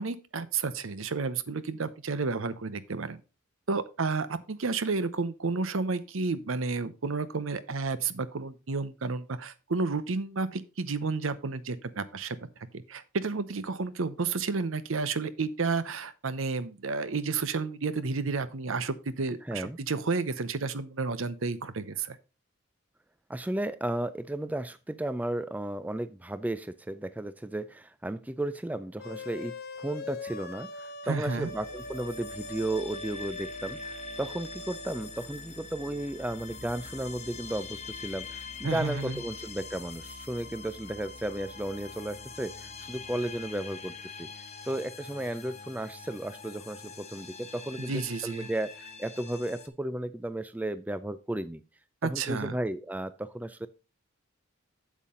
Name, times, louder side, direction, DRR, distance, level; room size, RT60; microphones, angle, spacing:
voice 1, 0.0-3.2 3.7-12.4 12.7-22.2 31.1-31.5 38.6-39.2 47.8-48.5 52.0-52.6, right 4 dB, 70° right, 14 dB, 0.8 m, -31 dB
voice 2, 19.5-19.8 23.3-44.3 44.7-51.6 52.0-53.7, right 1 dB, 10° right, 13 dB, 0.3 m, -34 dB
sound 1, 29.0-35.2, left 2 dB, 50° left, 0.7 m, -42 dB
sound 2, 31.1-49.7, left 4 dB, 30° left, 1.1 m, -44 dB
8.2 x 7.5 x 3.7 m, 0.30 s
head